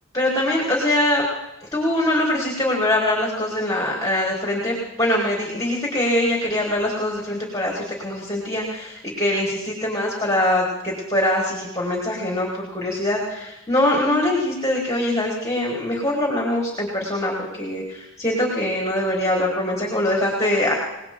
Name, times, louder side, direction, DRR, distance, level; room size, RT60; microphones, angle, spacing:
voice 1, 0.1-1.2 1.7-20.7, left 1 dB, 15° left, -2 dB, 4.0 m, -23 dB
29.5 x 19.0 x 2.3 m, 0.94 s
head